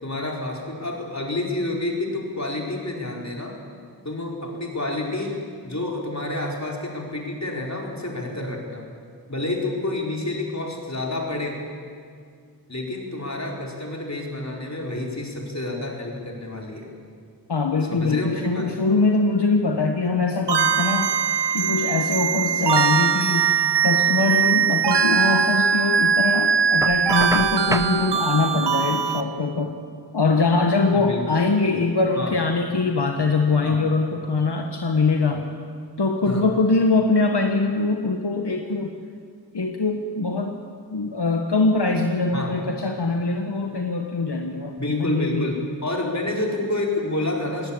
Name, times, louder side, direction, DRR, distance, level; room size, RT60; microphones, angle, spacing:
voice 1, 0.0-3.6 4.0-8.9 9.3-11.6 12.7-16.9 17.9-18.7 30.9-31.2 32.2-32.3 33.6-33.9 36.2-36.4 42.3-42.5 44.8-47.7, left 2 dB, 40° left, -1 dB, 4.3 m, -29 dB
voice 2, 17.5-21.1 21.5-23.5 23.8-29.7 30.1-35.5 36.0-38.9 39.5-40.6 40.9-45.6, left 3 dB, 80° left, 3 dB, 1.3 m, -22 dB
sound 1, 20.5-29.2, right 7 dB, 85° right, 0.8 m, -21 dB
Knock, 26.8-28.0, right 1 dB, 10° right, 0.8 m, -28 dB
19.0 x 18.5 x 8.6 m, 2.1 s
wide cardioid pair, 45°, 40 cm